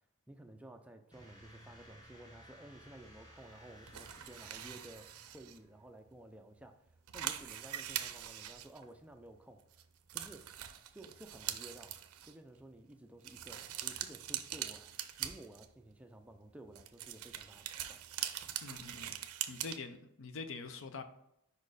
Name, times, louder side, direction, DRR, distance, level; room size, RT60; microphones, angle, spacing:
voice 1, 0.3-6.9 7.1-9.6 10.1-10.4 10.9-12.0 12.3-14.9 15.2-18.0, right 1 dB, 5° right, 0.3 m, -54 dB
sound 1, 1.1-5.8, equal, 20° left, 1.2 m, -57 dB
sound 2, 3.9-5.6 6.2-6.3 6.6-6.7 6.9-9.2 9.7-9.8 10.1-12.3 13.2-15.9 16.7-19.8, right 11 dB, 75° right, 0.5 m, -42 dB
voice 2, 18.6-19.2 19.5-21.0, left 4 dB, 60° left, 0.5 m, -45 dB
5.2 x 4.3 x 4.8 m
head